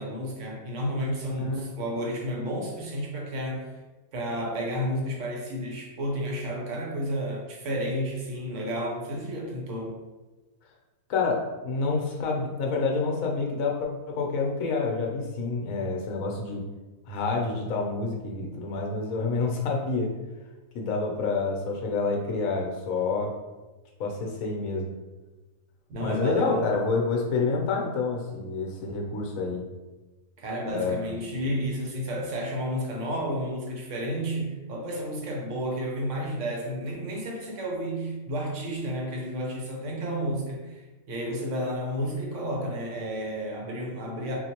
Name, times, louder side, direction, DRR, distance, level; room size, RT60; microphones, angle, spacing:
voice 1, 0.0-3.7 4.1-10.0 25.9-26.7 30.4-44.4, equal, 60° right, 0 dB, 1.0 m, -31 dB
voice 2, 1.4-1.7 11.1-16.6 17.1-20.1 20.7-23.4 24.0-24.9 26.0-29.6 30.7-31.3, left 4 dB, 70° left, 0 dB, 1.1 m, -28 dB
3.9 x 2.5 x 2.8 m, 1.2 s
omnidirectional pair, 1.5 m